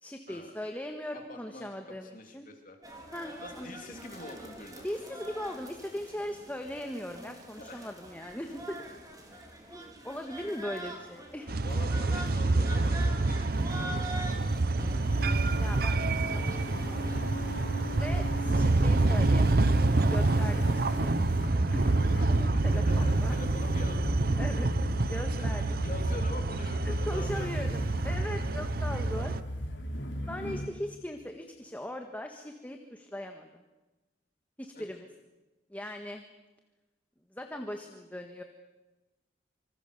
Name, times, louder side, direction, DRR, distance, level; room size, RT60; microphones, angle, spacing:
voice 1, 0.0-2.5 3.1-3.8 4.8-8.8 9.3-11.6 15.6-16.6 17.9-19.8 20.1-21.3 21.7-21.8 22.3-23.3 24.4-24.7 25.1-25.8 26.8-29.3 30.3-33.6 34.6-35.1 35.7-36.2 37.3-38.4, left 1 dB, 10° left, 4 dB, 1.5 m, -39 dB
voice 2, 1.1-2.8 3.4-4.8 7.6-8.0 11.6-14.4 18.0-18.1 22.5-24.2 25.4-25.5 25.8-27.7 34.7-34.9, left 2 dB, 45° left, 3 dB, 3.0 m, -45 dB
sound 1, 2.8-17.2, right 1 dB, 20° right, 4.1 m, -44 dB
sound 2, 11.5-29.4, right 2 dB, 55° right, 0.9 m, -27 dB
sound 3, 14.9-30.7, equal, 80° left, 3.1 m, -37 dB
26.0 x 25.5 x 6.8 m, 1.1 s
head